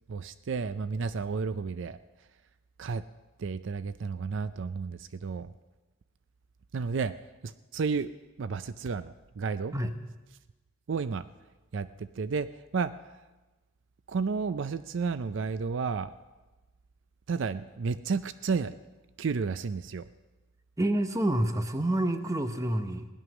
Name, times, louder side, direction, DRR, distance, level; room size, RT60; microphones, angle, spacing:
voice 1, 0.1-2.0 2.8-3.0 3.4-5.5 6.7-7.1 7.4-8.1 8.4-9.7 10.9-11.2 11.7-12.5 12.7-12.9 14.1-16.1 17.3-18.8 19.2-20.1, right 5 dB, 60° right, 14 dB, 0.4 m, -32 dB
voice 2, 20.8-23.1, right 1 dB, 15° right, 8 dB, 0.8 m, -28 dB
17.0 x 11.0 x 6.1 m, 1.2 s
head